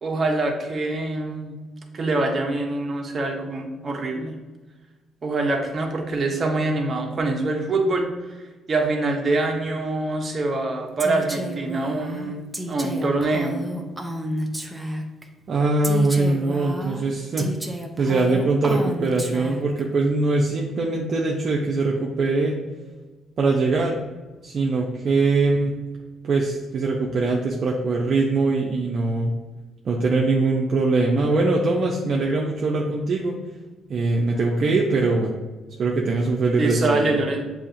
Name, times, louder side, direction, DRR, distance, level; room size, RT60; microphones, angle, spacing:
voice 1, 0.0-1.5 1.9-4.3 5.2-8.1 8.7-13.6 36.6-37.4, right 2 dB, 40° right, 1 dB, 0.9 m, -24 dB
Female speech woman speaking, 11.0-15.2 15.8-19.8, right 1 dB, 10° right, 0.6 m, -31 dB
voice 2, 15.5-17.5 18.0-22.6 23.4-24.0 24.4-25.7 26.2-29.3 29.9-33.4 33.9-35.3 35.8-37.2, right 3 dB, 55° right, -2 dB, 0.6 m, -22 dB
7.0 x 2.8 x 2.6 m, 1.2 s
cardioid pair, 90°, 0 cm